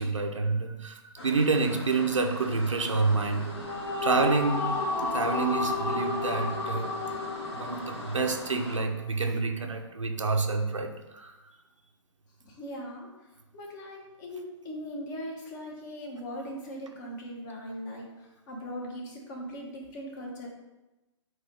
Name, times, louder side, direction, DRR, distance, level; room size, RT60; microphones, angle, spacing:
voice 1, 0.0-3.5 4.0-4.7 5.0-6.9 7.5-11.3, right 3 dB, 85° right, 3 dB, 0.9 m, -28 dB
sound 1, 1.2-8.8, left 1 dB, 60° left, 2.2 m, -41 dB
sound 2, 3.4-8.8, left 2 dB, 15° left, 0.6 m, -32 dB
voice 2, 12.4-13.3 13.5-20.5, equal, 40° left, -1 dB, 1.6 m, -40 dB
8.0 x 2.7 x 4.8 m, 1.0 s
figure-of-eight pair, 130°, 16 cm